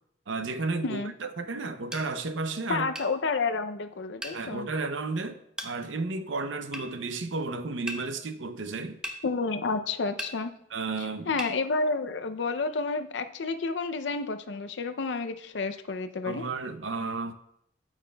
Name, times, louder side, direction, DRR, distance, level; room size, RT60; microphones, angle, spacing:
voice 1, 0.3-2.9 4.3-9.0 10.7-11.3 16.2-17.3, right 3 dB, 90° right, 0.7 m, -33 dB
sound 1, 1.9-2.1 3.0-3.1 4.2-4.4 5.6-5.7 6.7-6.9 7.9-8.0 9.0-9.2 10.2-10.4 11.4-11.6, right 1 dB, 5° right, 0.6 m, -36 dB
voice 2, 2.7-4.7 9.2-10.5 11.0-16.4, left 4 dB, 70° left, 0.5 m, -30 dB
8.9 x 8.7 x 2.3 m
head